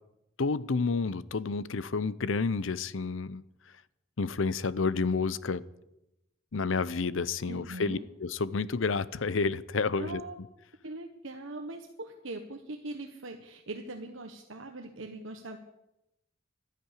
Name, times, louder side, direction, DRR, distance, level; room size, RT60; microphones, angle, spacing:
voice 1, 0.4-3.4 4.2-5.6 6.5-10.2, left 4 dB, 75° left, 18 dB, 0.7 m, -30 dB
voice 2, 7.5-8.0 9.9-10.3 10.8-15.6, right 2 dB, 75° right, 4 dB, 1.3 m, -41 dB
12.5 x 10.5 x 10.0 m, 0.87 s
head